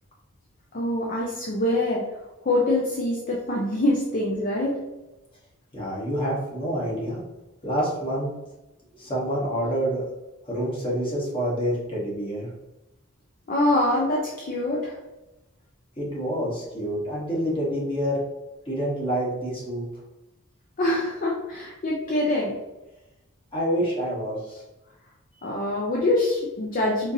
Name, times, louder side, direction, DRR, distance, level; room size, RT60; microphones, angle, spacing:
voice 1, 0.7-2.0 2.4-4.8 13.5-15.0 20.8-22.6 25.4-27.1, left 1 dB, 40° left, -3 dB, 0.5 m, -24 dB
voice 2, 5.7-7.2 7.6-8.3 8.9-10.0 10.5-12.5 16.0-18.2 18.6-19.9 23.5-24.6, equal, 25° left, -5 dB, 1.1 m, -27 dB
4.4 x 2.6 x 2.7 m, 1.0 s
head